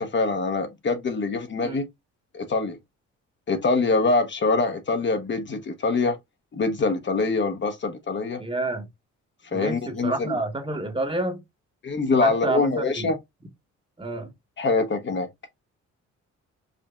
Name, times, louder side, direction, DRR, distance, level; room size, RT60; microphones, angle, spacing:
voice 1, 0.0-1.9 2.3-2.8 3.5-6.2 6.5-8.4 9.5-10.4 11.8-13.2 14.6-15.3, left 3 dB, 40° left, 0.8 m, -24 dB
voice 2, 8.4-8.9 9.5-11.4 12.2-13.1 14.0-14.3, right 2 dB, 15° right, 0.9 m, -29 dB
5.0 x 2.7 x 2.3 m
cardioid pair, 90°, 30 cm